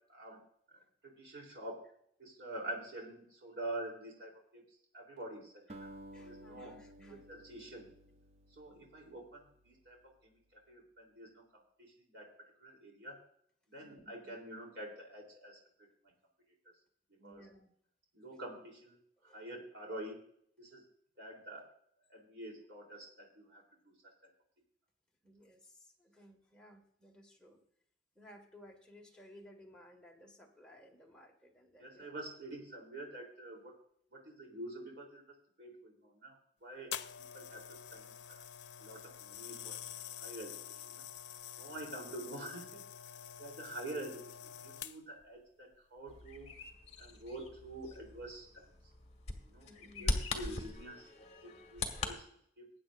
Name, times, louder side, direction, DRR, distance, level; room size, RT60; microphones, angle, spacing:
voice 1, 0.1-0.4 1.0-1.8 2.2-4.6 4.9-5.9 6.2-6.7 7.3-7.9 8.6-10.0 10.2-11.4 11.8-12.3 12.6-13.2 13.7-15.6 17.2-17.4 18.1-20.2 20.6-20.8 21.2-21.7 22.1-23.9 31.8-33.7 34.1-36.4 36.6-36.9 37.3-38.4 38.8-39.8 40.2-41.0 41.6-42.8 43.4-46.5 47.0-48.7 49.4-49.7 50.0-51.1 51.4-52.2 52.6-52.7, right 1 dB, 85° right, -1 dB, 3.4 m, -47 dB
Acoustic guitar, 5.7-10.1, right 1 dB, 40° right, 0.7 m, -55 dB
voice 2, 6.1-7.3 13.8-14.3 17.2-17.7 19.2-19.6 25.2-27.6 28.2-32.2 49.6-50.1, equal, 5° left, -1 dB, 1.7 m, -58 dB
sound 1, 36.9-45.2 46.0-46.2, left 9 dB, 85° left, 0.6 m, -47 dB
Bird vocalization bird call bird song, 46.1-52.1, left 2 dB, 40° left, 1.5 m, -41 dB
19.5 x 8.9 x 2.5 m, 0.67 s
head